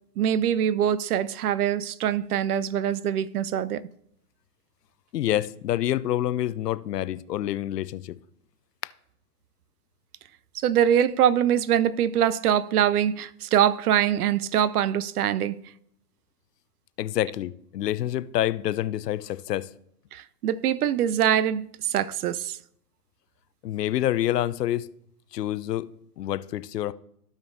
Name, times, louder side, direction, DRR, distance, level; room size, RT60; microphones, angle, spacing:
voice 1, 0.2-3.8 10.5-15.6 20.1-22.6, right 10 dB, 65° right, 0.6 m, -23 dB
voice 2, 5.1-8.2 17.0-19.7 23.6-24.9 25.3-25.9 26.2-26.9, left 13 dB, 70° left, 0.6 m, -27 dB
15.5 x 5.2 x 2.6 m
hypercardioid pair, 125°, 49 cm